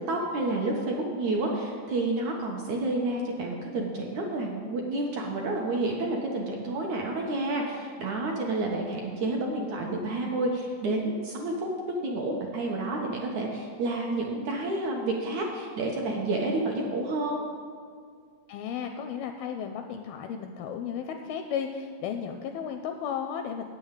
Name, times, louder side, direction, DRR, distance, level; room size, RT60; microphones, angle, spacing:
voice 1, 0.1-11.5 12.0-17.4, right 2 dB, 70° right, -1 dB, 1.8 m, -30 dB
voice 2, 18.5-23.6, left 7 dB, 80° left, 6 dB, 2.2 m, -34 dB
9.1 x 7.2 x 8.2 m, 2.1 s
omnidirectional pair, 4.7 m